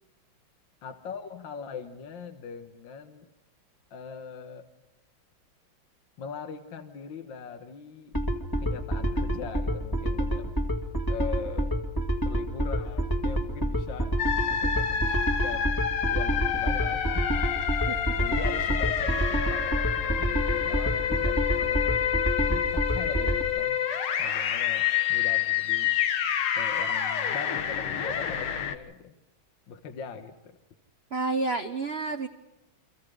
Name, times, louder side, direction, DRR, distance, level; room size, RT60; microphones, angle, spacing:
voice 1, 0.8-3.3 3.9-4.7 6.2-8.2 8.6-10.5 11.1-11.7 12.3-14.2 14.5-15.7 16.1-17.8 18.2-22.1 22.5-23.8 24.2-25.9 26.5-29.1 29.7-30.6, left 6 dB, 65° left, 6 dB, 2.0 m, -40 dB
sound 1, 8.1-23.4, right 1 dB, 10° left, 1.6 m, -28 dB
sound 2, 14.2-28.7, left 9 dB, 85° left, 2.2 m, -28 dB
voice 2, 31.1-32.3, right 3 dB, 50° right, 7 dB, 0.8 m, -29 dB
30.0 x 25.0 x 5.0 m, 0.97 s
omnidirectional pair, 2.3 m